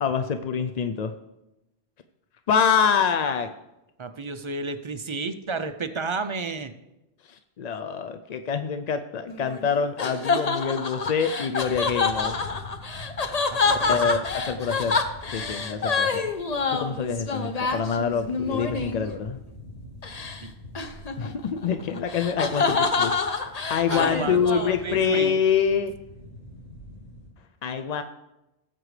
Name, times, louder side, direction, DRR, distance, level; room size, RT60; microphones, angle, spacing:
voice 1, 0.0-1.1 2.5-3.5 7.3-12.3 13.9-15.0 15.3-16.3 16.7-19.4 21.2-23.1 23.7-25.9 27.6-28.0, left 6 dB, 55° left, 8 dB, 0.4 m, -26 dB
voice 2, 4.0-6.7 13.5-14.2 20.4-20.5 23.9-25.4, right 4 dB, 45° right, 10 dB, 0.4 m, -32 dB
sound 1, 9.3-19.1 20.0-20.4 20.7-25.3, left 4 dB, 40° left, 0.8 m, -27 dB
sound 2, 11.6-27.3, left 1 dB, 85° left, 2.9 m, -45 dB
18.0 x 7.6 x 3.2 m, 0.95 s
omnidirectional pair, 1.1 m